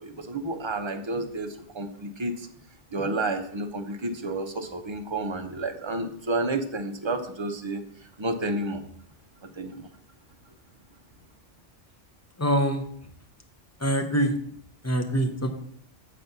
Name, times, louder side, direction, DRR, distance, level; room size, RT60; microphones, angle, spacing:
voice 1, 0.0-2.5 2.9-7.8 8.2-8.8 9.4-9.9, right 2 dB, 25° right, 5 dB, 0.7 m, -30 dB
voice 2, 12.4-12.8 13.8-14.3 14.8-15.5, right 1 dB, 15° left, 5 dB, 0.8 m, -24 dB
7.5 x 4.3 x 6.7 m, 0.63 s
omnidirectional pair, 1.2 m